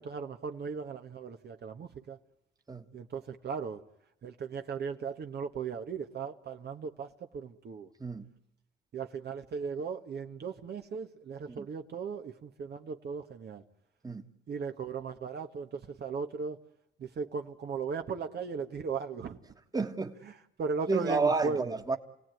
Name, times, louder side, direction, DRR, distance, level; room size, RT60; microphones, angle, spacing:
voice 1, 0.0-2.2 2.9-3.8 4.2-7.9 8.9-13.6 14.5-16.6 17.0-19.4 20.2-21.7, right 5 dB, 55° right, 1.6 m, -37 dB
voice 2, 19.7-20.1 20.9-22.0, right 4 dB, 20° right, 1.8 m, -30 dB
28.0 x 17.5 x 9.3 m
cardioid pair, 90°, 20 cm